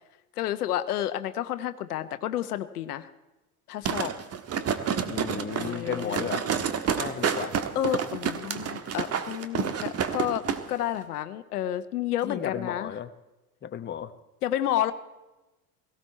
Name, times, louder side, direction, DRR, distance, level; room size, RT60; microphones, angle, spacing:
voice 1, 0.4-3.1 3.7-4.1 5.6-6.3 6.9-7.0 7.7-10.4 10.7-12.9 14.4-14.9, left 11 dB, 75° left, 12 dB, 1.1 m, -30 dB
Sounds For Earthquakes - Random Stuff Shaking, 3.8-10.6 10.9-11.0, right 7 dB, 30° right, 1.5 m, -29 dB
voice 2, 5.0-6.5 7.0-7.5 12.2-13.1 13.6-14.1, left 9 dB, 25° left, 10 dB, 1.0 m, -34 dB
17.5 x 17.5 x 4.3 m, 1.0 s
hypercardioid pair, 75°, 46 cm